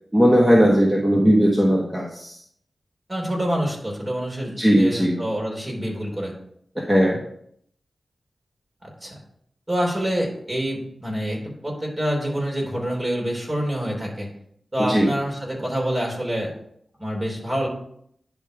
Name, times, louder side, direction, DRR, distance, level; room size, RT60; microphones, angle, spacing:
voice 1, 0.1-2.4 4.6-5.2 6.9-7.2 14.9-15.1, equal, 10° right, -3 dB, 1.4 m, -18 dB
voice 2, 3.1-6.3 8.8-9.1 9.7-14.3 14.7-16.5 17.0-17.7, equal, 30° right, -1 dB, 3.4 m, -26 dB
10.5 x 3.6 x 4.9 m, 0.68 s
cardioid pair, 55°, 0 cm